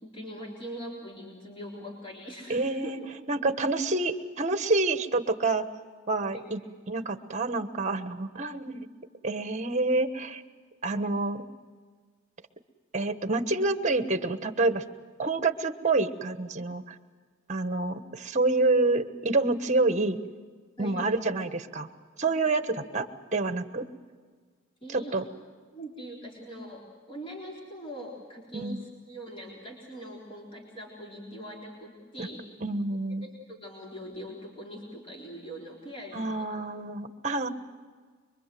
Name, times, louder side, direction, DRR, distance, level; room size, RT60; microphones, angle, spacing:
voice 1, 0.0-2.9 6.3-6.5 20.8-21.1 22.3-22.4 24.8-25.2 25.7-26.8 27.1-32.4 33.2-36.5 37.4-37.5, equal, 30° left, -3 dB, 3.9 m, -42 dB
voice 2, 2.5-3.0 3.3-5.6 6.1-6.6 6.9-8.9 9.2-10.4 10.8-11.4 12.9-14.8 15.2-16.9 17.5-20.2 20.8-21.9 22.2-23.9 24.9-25.2 28.5-28.8 32.2-32.3 32.6-33.2 36.1-37.5, right 3 dB, 35° right, 9 dB, 1.3 m, -27 dB
25.0 x 23.5 x 7.7 m, 1.5 s
head